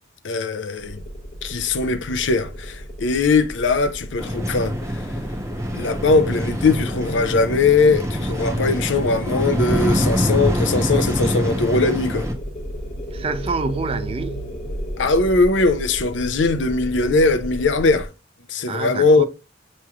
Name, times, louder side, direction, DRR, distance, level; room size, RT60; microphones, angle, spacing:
voice 1, 0.2-1.0 1.4-4.7 5.7-12.3 15.0-18.1 18.5-19.3, left 3 dB, 75° left, 0.5 m, -20 dB
sound 1, 0.8-18.1, equal, 30° left, 0.8 m, -34 dB
sound 2, 4.2-12.3, equal, 15° right, 0.8 m, -24 dB
voice 2, 13.1-14.5 18.7-19.3, right 4 dB, 30° right, 0.4 m, -27 dB
6.9 x 3.1 x 2.3 m
head